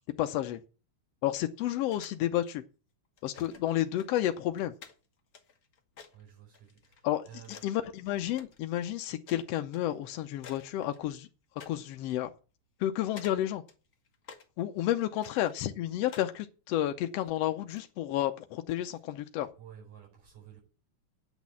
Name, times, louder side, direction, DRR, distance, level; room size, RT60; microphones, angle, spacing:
voice 1, 0.2-0.6 1.2-2.6 3.2-4.7 7.0-11.3 11.7-12.3 12.8-13.6 14.6-19.5, left 13 dB, 75° left, 1.5 m, -31 dB
plastic toy dart gun hits, 1.8-2.5 3.2-3.6 3.9-7.7 8.0-8.8 9.3-9.5 9.7-9.9 10.4-11.3 11.6-11.8 12.1-12.2 12.8-13.3 13.7-14.5 14.9-16.3 17.1-17.9, left 6 dB, 55° left, 1.0 m, -52 dB
voice 2, 6.1-7.6 19.6-20.6, right 9 dB, 90° right, 6.4 m, -52 dB
9.1 x 6.3 x 8.4 m
omnidirectional pair, 3.5 m